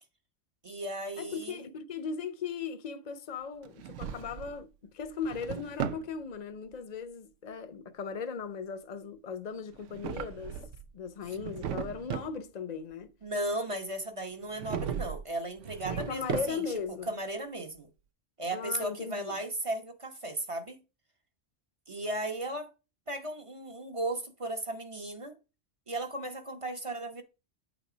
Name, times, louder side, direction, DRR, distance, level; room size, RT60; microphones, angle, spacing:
voice 1, 0.6-1.7 13.2-16.6 17.1-17.9 18.4-20.8 21.9-22.7 23.1-25.4 25.9-27.2, right 1 dB, 30° right, 0.9 m, -36 dB
voice 2, 1.2-10.6 10.9-13.1 15.9-17.2 18.5-19.4, left 6 dB, 40° left, 0.8 m, -38 dB
Drawer open or close, 3.6-4.6 5.0-6.1 9.7-10.9 11.3-12.4 14.6-15.3 15.6-16.9, right 8 dB, 80° right, 1.0 m, -37 dB
8.3 x 4.1 x 5.0 m
omnidirectional pair, 1.2 m